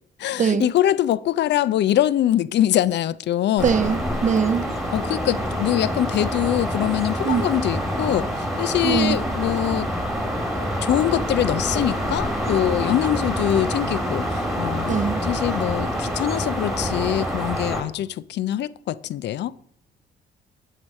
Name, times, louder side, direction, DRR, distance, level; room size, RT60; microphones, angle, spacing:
voice 1, 0.2-3.7 4.9-9.9 10.6-19.6, left 12 dB, 60° left, 0.4 m, -23 dB
sound 1, 3.6-17.8, equal, ahead, 1.7 m, -26 dB
voice 2, 3.6-4.8 7.2-7.4 8.8-9.2 14.9-15.2, right 6 dB, 40° right, 0.5 m, -22 dB
7.3 x 4.8 x 6.4 m
cardioid pair, 90°, 20 cm